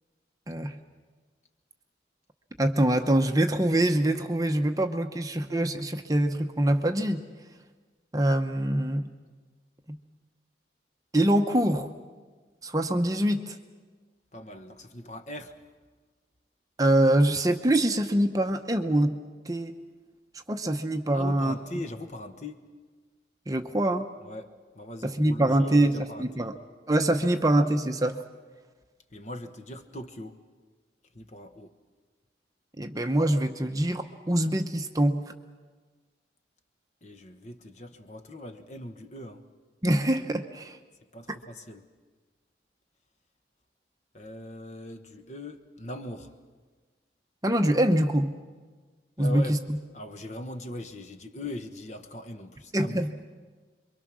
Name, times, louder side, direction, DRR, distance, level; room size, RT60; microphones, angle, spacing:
voice 1, 0.5-0.8 2.6-7.2 8.1-9.1 9.9-10.0 11.1-11.9 12.6-13.6 16.8-19.2 19.5-19.7 20.5-21.5 23.5-24.1 25.0-26.5 26.9-28.2 32.8-35.2 39.8-40.8 47.4-48.4 49.2-49.6 52.7-53.1, right 1 dB, 20° right, 0.8 m, -24 dB
voice 2, 14.3-15.6 21.1-22.7 24.2-26.5 29.1-30.4 31.1-31.7 37.0-39.4 41.1-41.9 44.1-46.3 49.2-49.6 49.9-53.1, left 1 dB, 40° left, 1.4 m, -40 dB
27.5 x 23.5 x 6.2 m
head